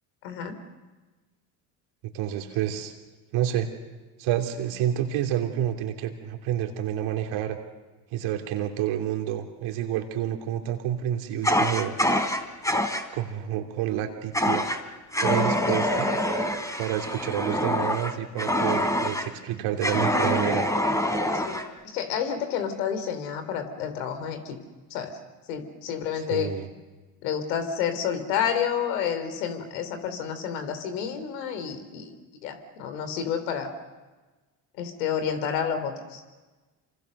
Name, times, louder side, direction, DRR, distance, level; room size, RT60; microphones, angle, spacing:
voice 1, 0.2-0.6 15.6-15.8 21.3-21.6 21.9-24.6 24.9-25.2 25.5-26.5 27.2-32.1 32.4-33.7 34.8-36.2, left 8 dB, 85° left, 8 dB, 3.4 m, -30 dB
voice 2, 2.1-2.9 3.3-3.7 4.2-7.6 8.1-11.9 13.1-14.6 15.2-16.1 16.8-20.6 26.3-26.7, right 11 dB, 70° right, 4 dB, 3.2 m, -29 dB
Fire, 11.4-13.1 14.3-14.8 15.1-19.3 19.8-21.7, equal, 5° left, 3.4 m, -25 dB
28.0 x 26.0 x 6.7 m, 1.2 s
hypercardioid pair, 60°, 48 cm